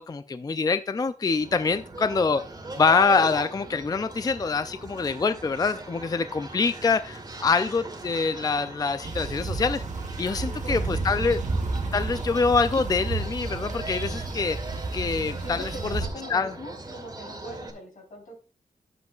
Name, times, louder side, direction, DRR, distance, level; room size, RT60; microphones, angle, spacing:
voice 1, 0.0-2.4 2.8-9.8 10.2-11.4 11.9-14.6 14.9-16.0 16.3-16.5, left 4 dB, 25° left, 0.4 m, -25 dB
sound 1, 1.4-17.7, right 2 dB, 30° right, 2.2 m, -39 dB
sound 2, 9.0-16.1, right 3 dB, 55° right, 1.2 m, -31 dB
voice 2, 10.4-11.3 15.4-18.4, equal, 70° left, 3.7 m, -42 dB
10.5 x 7.8 x 2.3 m
wide cardioid pair, 110°, 15 cm